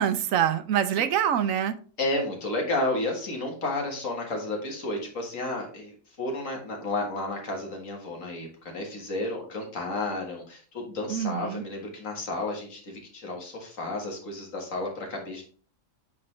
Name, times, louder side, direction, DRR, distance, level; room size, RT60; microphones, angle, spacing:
voice 1, 0.0-1.8 11.1-11.6, right 9 dB, 80° right, 11 dB, 1.1 m, -25 dB
voice 2, 2.0-15.4, left 2 dB, 70° left, 1 dB, 2.0 m, -32 dB
8.5 x 3.8 x 3.2 m, 0.42 s
omnidirectional pair, 1.4 m